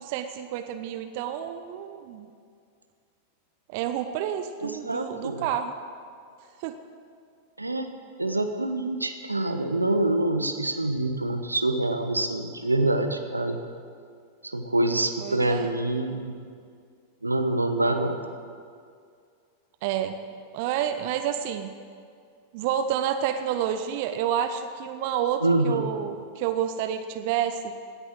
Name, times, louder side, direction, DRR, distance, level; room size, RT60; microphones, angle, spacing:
voice 1, 0.0-2.3 3.7-5.7 6.6-6.8 15.2-15.7 19.8-20.2 20.5-21.7 22.5-27.6, right 9 dB, 50° right, 9 dB, 0.8 m, -29 dB
voice 2, 4.6-5.5 7.6-7.9 8.2-13.6 14.4-16.4 17.2-18.2 25.4-25.8, right 2 dB, 85° right, 7 dB, 1.1 m, -26 dB
17.5 x 10.0 x 7.7 m, 2.2 s
figure-of-eight pair, 90°, 0 cm